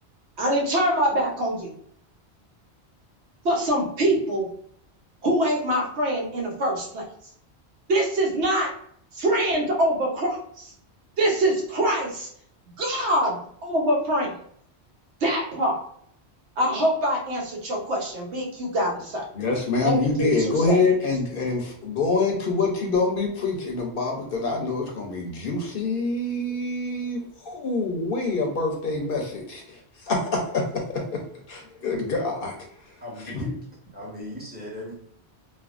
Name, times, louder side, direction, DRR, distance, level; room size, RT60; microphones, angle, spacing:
voice 1, 0.4-1.7 3.4-4.5 5.2-7.1 7.9-8.7 9.1-10.7 11.2-12.3 12.8-14.4 15.2-15.8 16.6-19.2 19.8-20.8, right 1 dB, 75° right, -1 dB, 1.1 m, -24 dB
voice 2, 19.3-31.2 31.5-32.6 33.2-33.5, left 3 dB, 60° left, 1 dB, 0.7 m, -26 dB
voice 3, 33.0-33.6 33.9-35.0, equal, 10° right, -4 dB, 0.8 m, -37 dB
3.3 x 2.2 x 2.4 m, 0.66 s
omnidirectional pair, 1.1 m